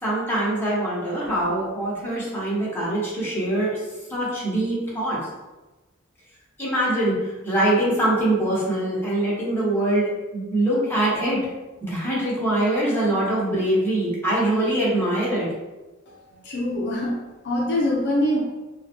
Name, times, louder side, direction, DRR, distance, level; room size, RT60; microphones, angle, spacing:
voice 1, 0.0-3.8 4.1-5.2 6.6-11.4 11.9-15.5, right 1 dB, 10° left, -7 dB, 1.0 m, -23 dB
voice 2, 16.1-18.4, left 1 dB, 60° left, -3 dB, 0.5 m, -25 dB
3.5 x 2.2 x 2.9 m, 1.1 s
head